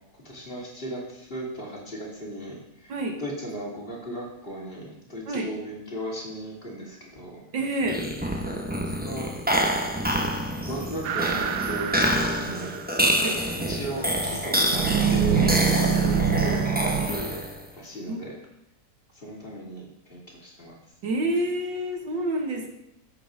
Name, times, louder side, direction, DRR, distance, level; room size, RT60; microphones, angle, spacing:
voice 1, 0.2-7.4 8.8-9.3 10.6-12.8 13.7-17.3 17.7-18.3 19.1-20.8, right 1 dB, 30° left, -4 dB, 3.0 m, -36 dB
voice 2, 7.5-8.0 13.2-13.4 15.4-15.5 18.1-18.2 21.0-22.7, right 1 dB, 85° right, 3 dB, 2.2 m, -28 dB
sound 1, 7.8-17.7, equal, 5° right, 0.8 m, -27 dB
sound 2, 11.0-13.1 14.7-17.1, right 7 dB, 70° right, 1.2 m, -25 dB
14.0 x 8.0 x 3.9 m, 0.84 s
omnidirectional pair, 1.9 m